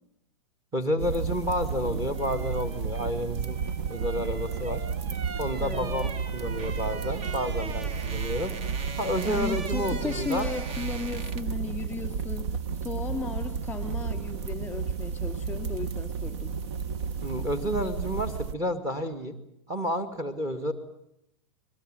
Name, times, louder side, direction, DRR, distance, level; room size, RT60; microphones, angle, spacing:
voice 1, 0.7-3.6 3.9-4.8 5.4-8.5 9.0-10.5 17.2-19.3 19.7-20.7, equal, 20° right, 8 dB, 2.5 m, -30 dB
sound 1, 1.0-18.5, right 6 dB, 55° right, 1.4 m, -32 dB
sound 2, 1.7-11.6 11.9-12.1, right 5 dB, 35° right, 1.3 m, -41 dB
voice 2, 5.6-6.1 9.2-16.5, left 5 dB, 10° left, 10 dB, 3.0 m, -36 dB
22.5 x 21.5 x 9.1 m, 0.79 s
hypercardioid pair, 115°, 16 cm